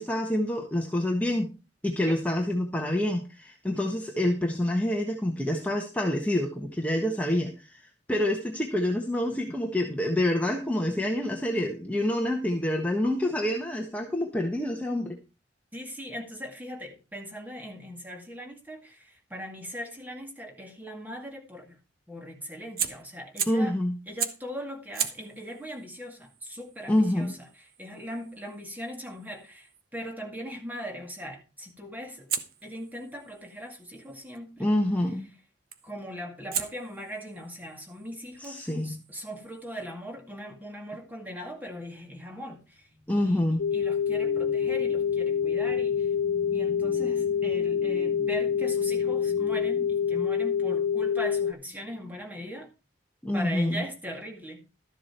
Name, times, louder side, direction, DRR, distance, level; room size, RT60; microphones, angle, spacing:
voice 1, 0.0-1.5 1.8-7.8 8.1-15.2 23.5-24.0 26.9-27.3 34.6-35.3 38.4-39.0 43.1-43.6 53.2-53.8, left 1 dB, 10° left, 1.3 m, -27 dB
voice 2, 15.7-21.8 22.1-23.7 24.1-32.3 32.6-34.7 35.8-42.8 43.1-46.1 46.5-52.7 53.3-54.6, equal, 10° right, 2.2 m, -40 dB
Fire, 22.8-23.7 24.2-24.5 24.9-29.9 32.3-34.4 35.7-36.0 36.5-39.9, right 8 dB, 55° right, 1.1 m, -38 dB
sound 1, 42.8-52.0, right 2 dB, 70° right, 5.0 m, -46 dB
sound 2, 43.6-51.5, left 7 dB, 65° left, 0.6 m, -26 dB
13.0 x 7.4 x 4.5 m
head